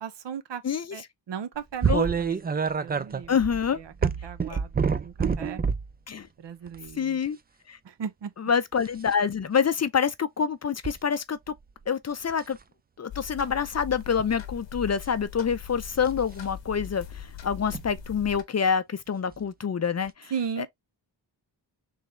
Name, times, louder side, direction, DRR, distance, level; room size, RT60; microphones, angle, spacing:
voice 1, 0.0-0.6 0.9-2.5 2.8-3.3 3.8-3.9 4.2-5.6 6.4-7.2 7.8-8.3 20.3-20.7, right 7 dB, 70° right, 0.7 m, -36 dB
voice 2, 0.6-1.1 1.8-2.1 3.3-3.8 4.5-4.6 6.1-6.3 7.0-7.4 7.7-7.8 8.4-11.5 11.9-12.6 13.0-20.7, left 7 dB, 40° left, 0.4 m, -27 dB
sound 1, 1.8-5.9 6.7-6.9 8.7-9.1 10.8-11.0 11.5-11.9 12.3-12.6 14.0-14.3 16.0-16.2 17.7-17.8 19.3-19.4 20.1-20.2, right 6 dB, 25° right, 0.3 m, -27 dB
sound 2, 13.1-18.4, left 8 dB, 80° left, 0.8 m, -41 dB
3.7 x 3.2 x 3.1 m
wide cardioid pair, 85°, 44 cm